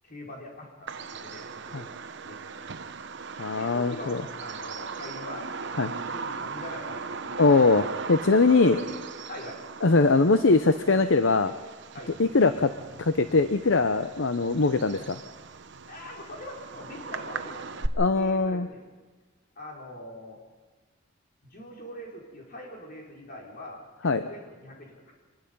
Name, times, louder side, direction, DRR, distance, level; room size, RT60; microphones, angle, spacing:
voice 1, 0.0-1.9 2.2-2.9 3.5-7.6 8.1-9.0 9.3-9.6 11.9-12.2 15.9-17.7 18.1-18.8 19.5-20.4 21.4-25.1, left 1 dB, 45° left, -2 dB, 5.1 m, -43 dB
Bird vocalization bird call bird song, 0.9-17.9, right 4 dB, 60° right, 0.9 m, -38 dB
voice 2, 3.4-4.2 5.8-5.9 7.4-8.8 9.8-11.5 12.2-12.7 13.0-15.2 18.0-18.7 24.0-24.2, left 3 dB, 70° left, 10 dB, 0.7 m, -21 dB
25.0 x 20.0 x 5.5 m, 1.3 s
head